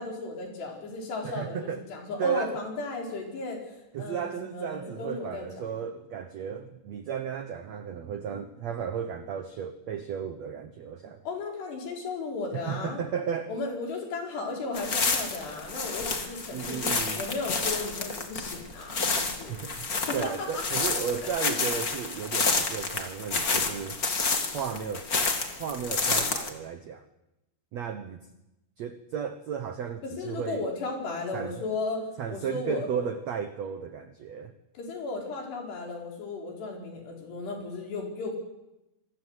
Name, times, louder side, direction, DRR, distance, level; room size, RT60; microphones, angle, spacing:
voice 1, 0.0-5.6 11.2-13.0 13.5-19.6 20.1-20.8 21.2-21.6 30.0-33.1 34.7-38.5, left 3 dB, 75° left, 1 dB, 6.6 m, -35 dB
voice 2, 1.2-1.8 2.2-2.6 3.9-11.2 12.5-13.5 16.5-17.2 19.5-24.0 24.5-25.1 25.6-27.0 27.7-28.2 28.8-30.6 31.3-31.5 32.2-34.5, right 7 dB, 80° right, 9 dB, 1.5 m, -34 dB
sound 1, 14.7-26.5, left 4 dB, 35° left, 1.6 m, -29 dB
26.0 x 20.5 x 8.1 m, 0.94 s
omnidirectional pair, 4.8 m